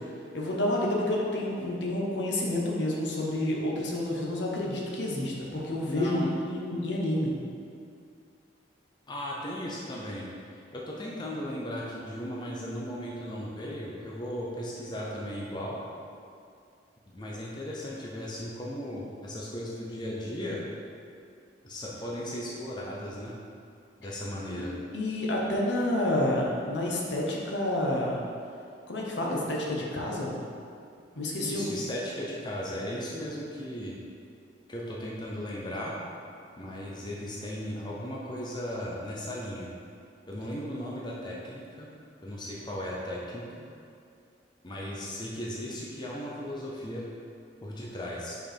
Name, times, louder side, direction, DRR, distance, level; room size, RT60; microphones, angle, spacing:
voice 1, 0.3-7.3 24.5-24.6 24.9-28.2 28.9-30.3 31.2-31.6, left 1 dB, 70° left, -3 dB, 1.0 m, -29 dB
voice 2, 5.9-6.3 9.1-15.8 17.1-20.6 21.6-23.4 24.0-24.7 31.4-34.0 34.7-36.0 36.6-39.7 40.3-41.9 42.2-43.6 44.6-47.0 47.6-48.4, equal, 25° left, -4 dB, 0.6 m, -36 dB
5.4 x 4.7 x 4.4 m, 2.4 s
head